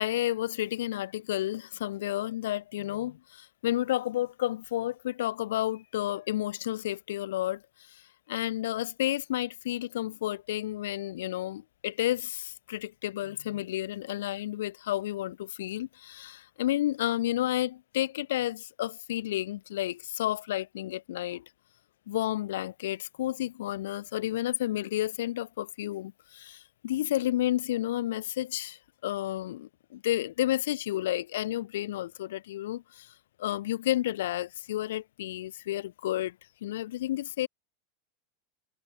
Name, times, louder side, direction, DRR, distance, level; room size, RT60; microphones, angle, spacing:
voice 1, 0.0-7.6 7.9-8.0 8.3-21.4 22.1-33.1 33.4-36.4 36.6-37.5, left 14 dB, 85° left, 4.1 m, -31 dB
supercardioid pair, 165°, 0 cm